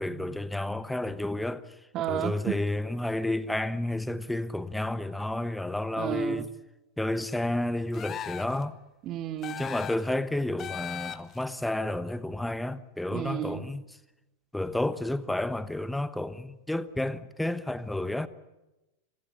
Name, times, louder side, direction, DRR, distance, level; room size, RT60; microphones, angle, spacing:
voice 1, 0.0-1.7 2.1-6.5 7.0-8.8 9.6-13.9 14.5-18.3, left 1 dB, 5° left, 1.0 m, -31 dB
voice 2, 1.9-2.5 6.0-6.5 9.1-9.6 13.1-13.7, right 12 dB, 35° right, 1.1 m, -32 dB
sound 1, 7.9-8.6 9.4-10.1 10.6-11.4, left 9 dB, 25° left, 1.0 m, -38 dB
27.0 x 16.5 x 8.6 m
figure-of-eight pair, 90°, 0 cm